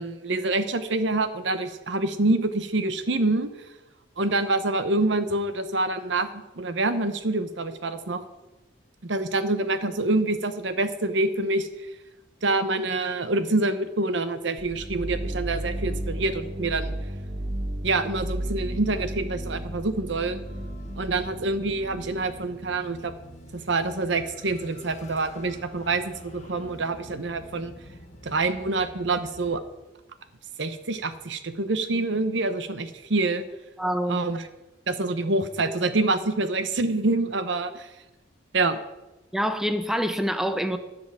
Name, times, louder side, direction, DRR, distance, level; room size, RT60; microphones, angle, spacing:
voice 1, 0.0-3.5 4.2-6.3 6.6-8.2 9.0-11.7 12.4-16.9 17.8-20.4 21.0-23.1 23.7-27.7 28.2-29.6 30.6-33.4 34.1-34.5 34.9-37.9 38.5-38.8, right 2 dB, 70° right, 11 dB, 0.9 m, -26 dB
sound 1, 14.6-22.3, right 1 dB, 40° right, 1.0 m, -33 dB
sound 2, 20.4-29.6, equal, 35° left, 1.4 m, -46 dB
voice 2, 33.8-34.2 39.3-40.8, equal, ahead, 9 dB, 0.5 m, -26 dB
14.0 x 5.2 x 7.5 m, 1.0 s
head